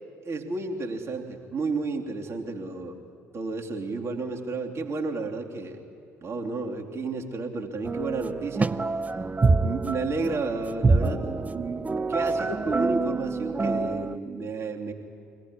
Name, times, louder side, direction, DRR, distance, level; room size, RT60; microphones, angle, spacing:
voice 1, 0.2-3.0 3.3-5.8 6.2-8.7 9.6-14.9, right 3 dB, 40° right, 0 dB, 2.9 m, -32 dB
sound 1, 7.8-14.2, right 3 dB, 20° right, 0.7 m, -26 dB
24.5 x 18.0 x 9.9 m, 2.4 s
figure-of-eight pair, 55°, 7 cm